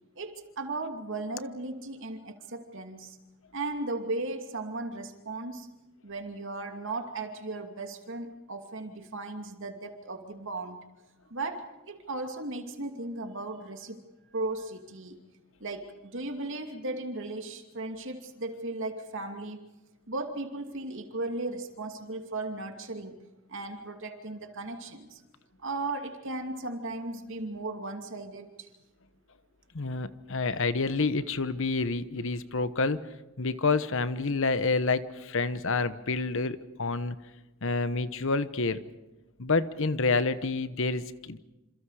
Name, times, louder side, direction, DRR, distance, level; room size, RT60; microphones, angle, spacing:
voice 1, 0.2-3.2 3.5-5.7 6.0-10.8 11.3-14.0 14.3-15.2 15.6-19.7 20.1-25.2 25.6-28.7, right 2 dB, 65° right, 5 dB, 2.6 m, -36 dB
voice 2, 29.7-33.0 33.4-37.2 37.6-38.8 39.4-41.4, left 3 dB, 65° left, 13 dB, 1.1 m, -28 dB
28.0 x 27.5 x 5.0 m, 1.0 s
head